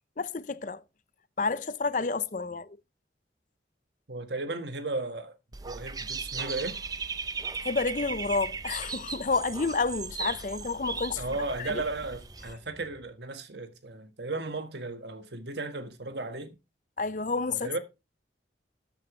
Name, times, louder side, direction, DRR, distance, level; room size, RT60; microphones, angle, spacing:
voice 1, 0.2-0.8 1.4-2.7 7.6-11.2 11.6-11.8 17.0-17.7, left 4 dB, 45° left, 0.5 m, -30 dB
voice 2, 4.1-5.4 5.6-6.8 11.2-16.6 17.5-17.8, right 2 dB, 75° right, 1.6 m, -35 dB
Dog / Bird, 5.5-12.5, right 5 dB, 20° right, 0.6 m, -37 dB
sound 1, 6.4-8.2, right 4 dB, 50° right, 1.5 m, -53 dB
sound 2, 8.0-13.1, equal, 5° left, 2.6 m, -55 dB
13.0 x 9.0 x 3.2 m
head